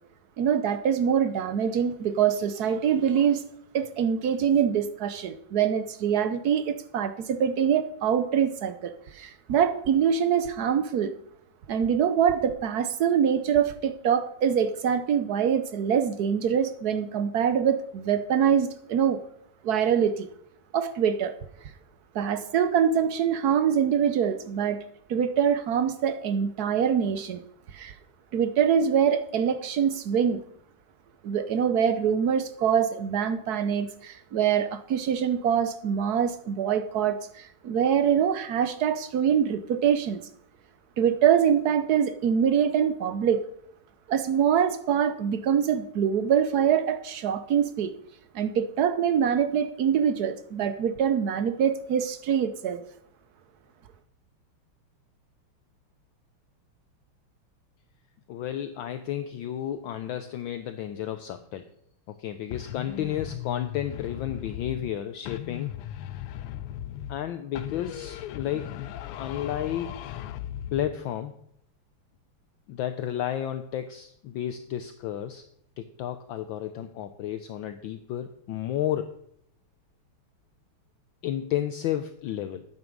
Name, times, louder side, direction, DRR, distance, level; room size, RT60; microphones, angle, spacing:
voice 1, 0.4-3.4 3.7-11.1 11.7-19.2 19.6-20.3 20.7-21.3 22.1-24.8 25.1-27.4 27.7-27.9 28.3-30.4 31.2-40.2 41.0-43.4 44.1-47.9 48.3-52.8, right 8 dB, 65° right, 10 dB, 1.0 m, -24 dB
voice 2, 58.3-61.6 62.1-65.7 67.1-68.8 69.2-70.3 70.7-71.3 72.7-75.4 75.8-79.1 81.2-82.6, left 11 dB, 70° left, 9 dB, 1.3 m, -32 dB
sound 1, 62.5-65.0 65.3-67.3 67.6-71.0, left 12 dB, 85° left, 1.5 m, -37 dB
11.0 x 9.2 x 5.3 m, 0.69 s
omnidirectional pair, 2.4 m